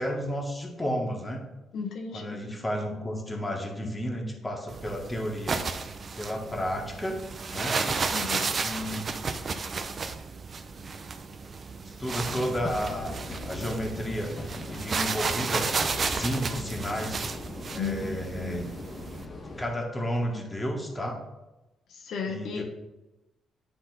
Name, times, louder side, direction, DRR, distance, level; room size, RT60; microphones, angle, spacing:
voice 1, 0.0-1.4 2.1-5.8 6.2-7.2 7.5-7.8 8.6-9.0 12.0-14.3 14.7-17.2 17.7-18.7 19.6-21.2 22.3-22.6, equal, 15° left, 0 dB, 1.7 m, -32 dB
voice 2, 1.7-2.4 8.1-8.5 17.7-18.6 21.9-22.6, left 6 dB, 75° left, 2 dB, 0.9 m, -34 dB
sound 1, 4.7-19.2, right 4 dB, 40° right, 0.6 m, -33 dB
sound 2, 12.1-19.7, left 2 dB, 40° left, 1.3 m, -40 dB
10.0 x 3.8 x 4.1 m, 1.0 s
cardioid pair, 90°, 0 cm